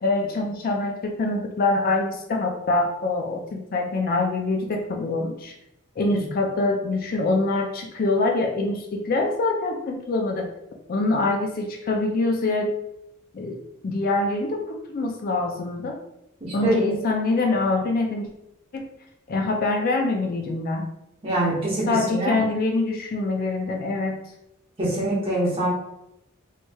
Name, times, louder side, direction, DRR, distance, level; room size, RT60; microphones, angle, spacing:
voice 1, 0.0-5.5 6.0-10.5 10.9-12.7 13.3-13.6 13.8-16.0 16.5-18.3 18.7-18.9 19.3-20.9 21.9-24.2, left 2 dB, 45° left, 2 dB, 0.4 m, -24 dB
voice 2, 16.6-16.9 21.2-22.4 24.8-25.7, right 1 dB, 25° right, -6 dB, 1.1 m, -24 dB
3.1 x 3.0 x 2.2 m, 0.84 s
head